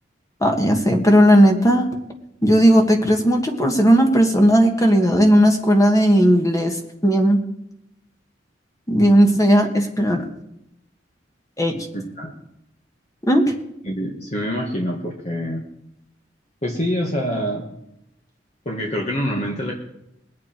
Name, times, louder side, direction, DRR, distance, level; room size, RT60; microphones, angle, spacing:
voice 1, 0.4-1.9 2.4-6.8 7.0-7.4 8.9-10.3 11.6-11.9 13.3-13.5, equal, 20° left, 3 dB, 1.6 m, -16 dB
voice 2, 11.9-12.3 13.9-15.7 16.6-17.7 18.7-19.7, equal, 40° left, -1 dB, 1.7 m, -25 dB
21.0 x 8.5 x 4.6 m, 0.83 s
head